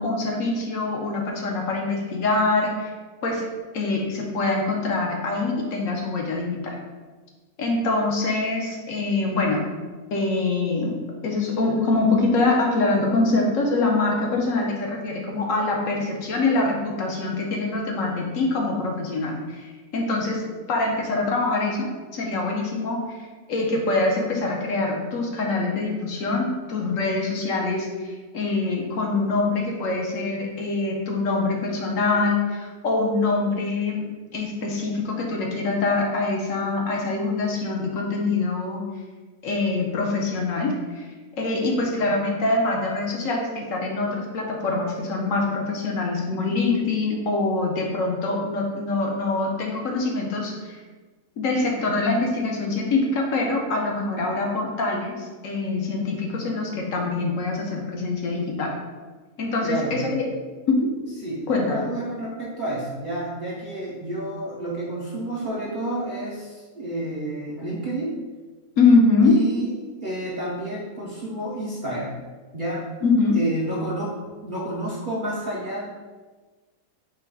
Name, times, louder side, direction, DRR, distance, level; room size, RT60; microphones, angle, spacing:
voice 1, 0.0-2.9 3.2-3.4 3.7-6.8 7.6-9.6 10.1-21.9 22.1-23.2 23.5-38.8 39.4-41.1 41.4-50.8 51.4-58.7 59.4-60.3 60.7-60.9 61.5-61.8 68.8-69.5 73.0-73.4, left 3 dB, 65° left, 0 dB, 1.1 m, -24 dB
voice 2, 59.6-60.1 61.2-68.2 69.2-69.7 70.0-72.1 72.5-72.9 73.3-74.1 74.4-75.9, right 1 dB, 50° right, -5 dB, 0.6 m, -30 dB
4.6 x 2.2 x 4.6 m, 1.3 s
omnidirectional pair, 1.5 m